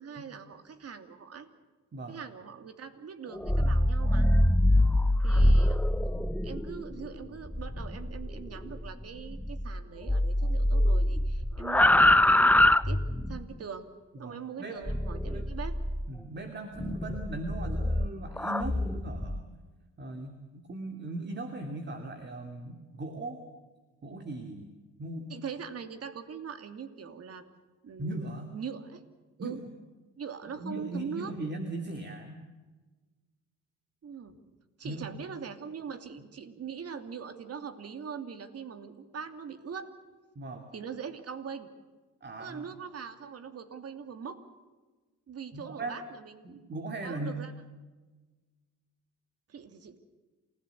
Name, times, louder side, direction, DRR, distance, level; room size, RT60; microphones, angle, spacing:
voice 1, 0.0-1.5 2.1-4.3 5.2-5.9 6.4-13.9 14.2-15.8 20.2-20.3 25.3-27.4 27.8-29.0 29.4-29.6 30.2-31.3 34.0-34.4 34.8-39.9 40.7-41.7 42.4-44.4 45.3-46.5 47.0-47.5 49.5-50.0, right 6 dB, 55° right, 9 dB, 2.7 m, -42 dB
sound 1, 3.3-9.8 10.1-13.5 14.9-16.1 16.8-19.4, left 1 dB, 5° left, 0.7 m, -25 dB
voice 2, 4.7-5.2 14.2-14.8 15.3-15.5 16.1-19.4 20.0-23.4 24.0-24.7 25.0-25.3 28.0-28.5 29.4-29.6 30.5-32.4 34.8-35.1 40.4-40.7 42.2-42.7 45.5-46.0 46.4-47.5, right 2 dB, 35° right, 5 dB, 2.8 m, -38 dB
28.5 x 16.0 x 8.2 m, 1.3 s
cardioid pair, 90°, 30 cm